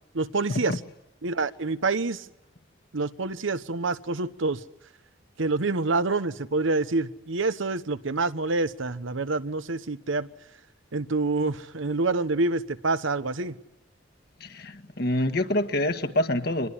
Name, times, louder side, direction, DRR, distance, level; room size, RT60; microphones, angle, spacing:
voice 1, 0.1-0.8 1.2-2.3 2.9-4.6 5.4-10.3 10.9-13.6, right 3 dB, 85° right, 13 dB, 1.1 m, -27 dB
voice 2, 14.4-16.7, left 1 dB, 55° left, 7 dB, 1.8 m, -26 dB
25.5 x 21.0 x 9.9 m, 0.87 s
head